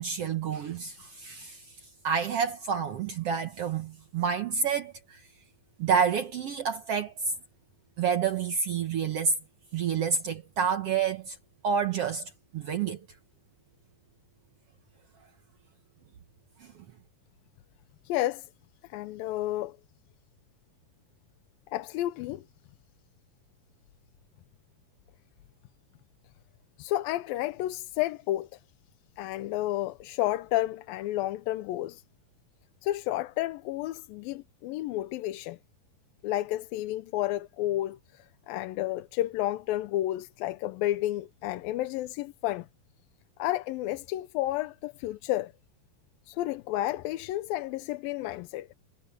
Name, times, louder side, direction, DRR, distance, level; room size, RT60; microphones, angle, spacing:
voice 1, 0.0-1.7 2.0-5.2 5.8-7.1 8.0-9.3 9.7-11.4 11.6-13.0 16.6-16.7, right 6 dB, 70° right, 1.4 m, -29 dB
voice 2, 18.1-18.5 18.9-19.8 21.7-22.4 26.8-28.6 29.2-32.0 32.8-35.6 36.2-42.7 43.4-45.5 46.3-48.7, left 15 dB, 85° left, 2.5 m, -31 dB
omnidirectional pair, 4.1 m